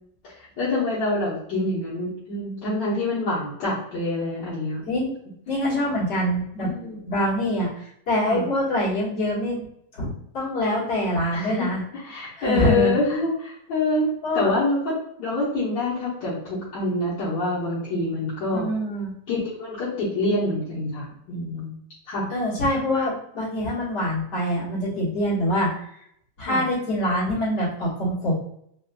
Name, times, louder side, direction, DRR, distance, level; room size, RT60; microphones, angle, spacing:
voice 1, 0.2-4.8 6.6-7.0 8.2-8.4 11.3-14.1 14.3-14.9 15.2-18.7 19.3-21.7 22.1-22.3 26.5-26.6, left 2 dB, 75° left, -10 dB, 1.6 m, -26 dB
voice 2, 5.5-6.7 7.1-9.6 9.9-11.8 12.4-13.0 14.2-14.6 18.5-19.1 22.3-25.8 26.4-28.3, equal, 60° left, -9 dB, 2.1 m, -25 dB
4.1 x 2.4 x 2.2 m, 0.70 s
omnidirectional pair, 2.0 m